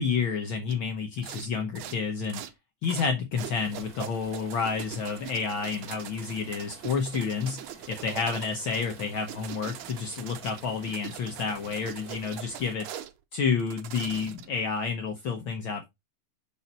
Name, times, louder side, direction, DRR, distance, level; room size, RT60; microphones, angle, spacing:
voice 1, 0.0-2.4 2.8-7.6 7.9-12.9 13.3-15.9, left 5 dB, 90° left, 1.1 m, -30 dB
sound 1, 0.7-0.8 1.2-1.5 1.7-2.5 2.8-3.1 3.4-13.1 13.6-14.6, right 11 dB, 70° right, 1.8 m, -41 dB
sound 2, 3.3-12.8, right 5 dB, 50° right, 1.2 m, -50 dB
5.8 x 5.5 x 4.1 m
omnidirectional pair, 3.4 m